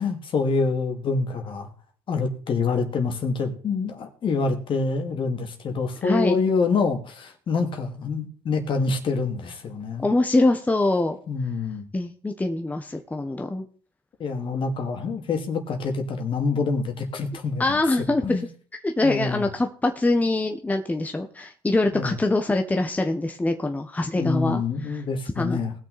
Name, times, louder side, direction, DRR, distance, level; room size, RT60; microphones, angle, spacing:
voice 1, 0.0-1.7 2.1-10.0 11.3-11.9 14.2-17.8 18.2-18.4 19.0-19.5 21.9-22.2 24.1-25.7, left 4 dB, 50° left, 5 dB, 2.5 m, -26 dB
voice 2, 6.0-6.4 10.0-11.2 11.9-13.7 17.6-18.4 18.8-24.6 24.9-25.0 25.4-25.6, left 2 dB, 15° left, 5 dB, 1.2 m, -24 dB
19.0 x 6.4 x 4.2 m, 0.42 s
supercardioid pair, 85°, 11 cm